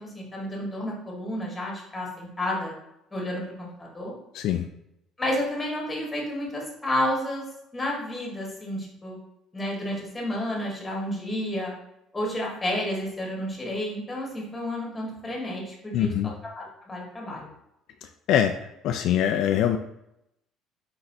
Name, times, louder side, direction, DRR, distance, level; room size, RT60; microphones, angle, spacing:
voice 1, 0.0-2.8 3.1-4.1 5.2-7.4 7.7-9.2 9.5-11.7 12.1-17.5, left 1 dB, 15° left, -2 dB, 1.7 m, -31 dB
voice 2, 4.3-4.6 15.9-16.3 18.3-18.5 18.8-19.8, left 10 dB, 70° left, 6 dB, 0.3 m, -23 dB
4.4 x 3.8 x 2.7 m, 0.82 s
cardioid pair, 100°, 0 cm